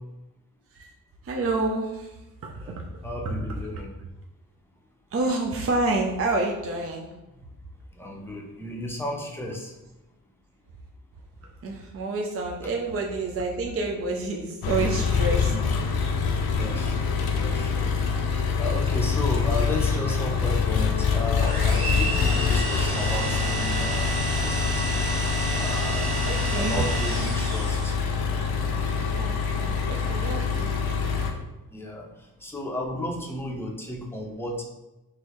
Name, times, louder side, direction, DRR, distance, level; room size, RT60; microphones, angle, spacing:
voice 1, 1.2-2.9 3.2-3.7 5.1-7.1 11.6-15.5 26.2-26.8 29.2-30.7, right 2 dB, 40° right, 0 dB, 0.5 m, -28 dB
voice 2, 2.6-3.9 8.0-9.7 12.6-12.7 15.5-15.6 16.6-17.1 17.4-17.8 18.6-25.1 25.6-26.1 26.6-27.9 31.7-34.6, left 1 dB, 5° left, 0 dB, 0.6 m, -34 dB
Engine, 14.6-31.3, left 5 dB, 90° left, 0.6 m, -25 dB
sound 1, 21.4-28.1, right 2 dB, 85° right, 1.4 m, -31 dB
3.8 x 3.1 x 3.0 m, 1.0 s
cardioid pair, 105°, 36 cm